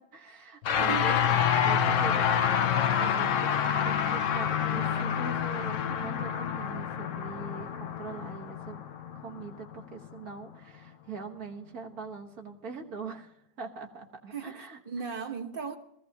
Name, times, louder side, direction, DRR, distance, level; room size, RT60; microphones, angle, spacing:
voice 1, 0.0-8.8 9.2-14.8, right 5 dB, 70° right, 1.9 m, -43 dB
sound 1, 0.6-10.1, left 8 dB, 60° left, 1.0 m, -28 dB
voice 2, 0.7-1.4 14.3-15.8, right 6 dB, 40° right, 1.2 m, -37 dB
20.0 x 15.5 x 2.9 m
omnidirectional pair, 1.7 m